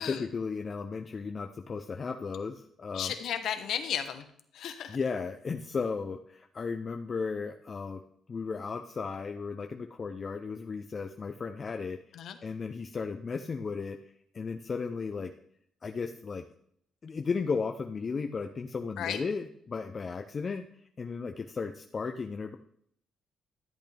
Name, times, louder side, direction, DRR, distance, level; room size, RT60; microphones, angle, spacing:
voice 1, 0.0-3.1 4.9-8.0 8.3-12.0 12.4-14.0 14.3-15.3 15.8-16.4 17.0-20.7 21.0-22.6, left 5 dB, 40° left, 5 dB, 0.7 m, -35 dB
voice 2, 2.9-4.2 4.5-5.0 12.1-12.4 19.0-19.2, left 9 dB, 75° left, 9 dB, 1.1 m, -34 dB
13.5 x 8.3 x 3.5 m, 0.67 s
cardioid pair, 90°, 0 cm